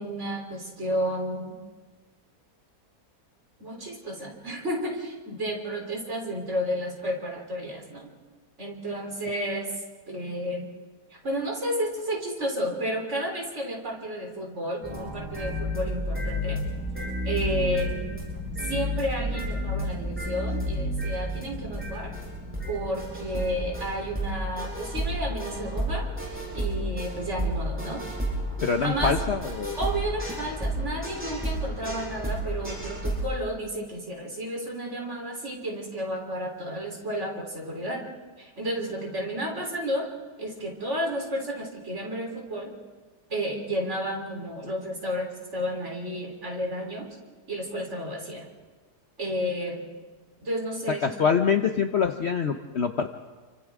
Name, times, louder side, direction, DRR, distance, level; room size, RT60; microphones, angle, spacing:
voice 1, 0.0-1.6 3.6-8.1 8.6-9.7 10.1-10.7 11.1-16.6 17.2-18.0 18.6-22.1 22.7-28.0 28.8-29.2 29.8-38.0 38.4-40.1 40.4-42.7 43.3-47.1 47.5-48.4 49.2-49.8 50.4-51.4, equal, 45° right, 0 dB, 4.0 m, -32 dB
sound 1, 14.8-33.2, equal, 5° right, 8.1 m, -31 dB
voice 2, 28.6-29.8 51.0-53.1, left 6 dB, 50° left, 6 dB, 0.9 m, -25 dB
29.5 x 25.0 x 3.7 m, 1.4 s
omnidirectional pair, 1.8 m